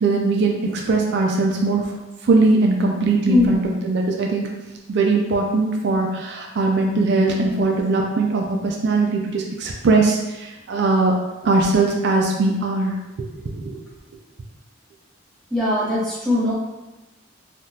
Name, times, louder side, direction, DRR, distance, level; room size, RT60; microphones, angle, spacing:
voice 1, 0.0-1.9 2.2-4.5 4.9-11.1 11.4-12.9 13.5-13.8, right 3 dB, 55° right, 1 dB, 0.4 m, -20 dB
voice 2, 3.3-3.7 7.4-7.6 15.5-16.5, left 2 dB, ahead, -9 dB, 1.0 m, -21 dB
3.5 x 2.4 x 2.7 m, 1.0 s
head